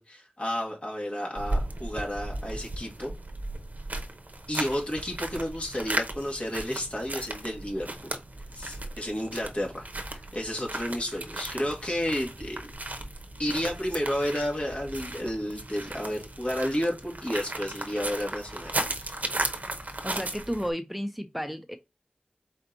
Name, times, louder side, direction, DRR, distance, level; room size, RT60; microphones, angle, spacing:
voice 1, 0.0-3.1 4.5-8.1 8.5-12.6 13.4-18.7 19.0-19.3, equal, 45° left, 1.9 m, -31 dB
sound 1, 1.4-20.7, right 2 dB, 60° right, 0.7 m, -36 dB
voice 2, 20.0-21.8, equal, 5° right, 0.4 m, -32 dB
4.3 x 2.9 x 3.8 m
wide cardioid pair, 50°, 3 cm